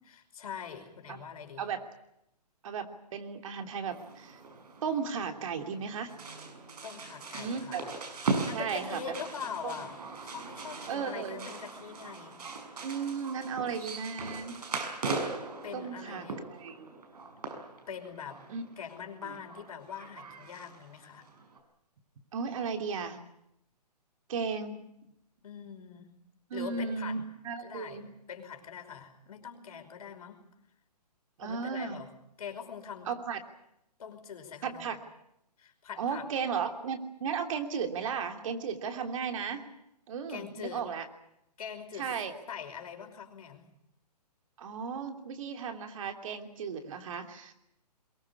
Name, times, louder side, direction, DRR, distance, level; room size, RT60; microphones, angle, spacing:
voice 1, 0.1-1.7 6.8-7.9 8.3-12.4 13.6-13.8 15.6-16.4 17.9-18.4 18.8-21.3 25.4-26.1 26.5-27.2 27.6-30.4 31.4-32.1 32.4-33.1 34.0-34.9 35.6-36.3 40.3-40.9 41.6-42.2 42.5-43.6, left 7 dB, 60° left, 5 dB, 5.3 m, -43 dB
voice 2, 2.6-4.4 4.8-6.1 7.3-7.8 8.5-9.0 9.6-9.8 10.9-11.5 12.8-14.6 15.7-16.9 18.5-18.6 19.2-19.4 22.3-23.2 24.3-24.8 26.5-28.0 31.4-32.0 33.1-33.4 34.6-35.0 36.0-39.6 40.1-41.0 42.0-42.3 44.6-47.5, right 6 dB, 50° right, 5 dB, 3.1 m, -35 dB
sound 1, 3.9-21.6, right 3 dB, 70° right, 6.0 m, -40 dB
22.5 x 19.5 x 9.8 m, 0.79 s
hypercardioid pair, 140°, 21 cm